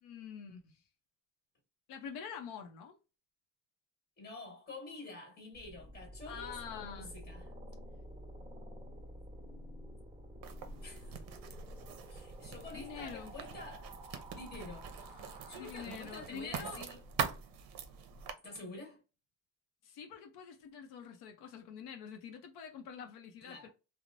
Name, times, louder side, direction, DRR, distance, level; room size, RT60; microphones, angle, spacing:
voice 1, 0.0-0.8 1.9-2.9 6.3-7.1 12.7-13.3 15.6-16.9 19.8-23.7, left 7 dB, 80° left, 0.6 m, -46 dB
voice 2, 4.2-7.5 10.8-11.2 12.1-17.0 18.4-19.0 23.4-23.7, left 2 dB, 25° left, 1.3 m, -48 dB
sound 1, 5.5-16.5, equal, 10° right, 0.9 m, -50 dB
Writing, 10.4-18.3, right 7 dB, 60° right, 0.6 m, -43 dB
3.0 x 2.0 x 2.5 m
cardioid pair, 145°, 39 cm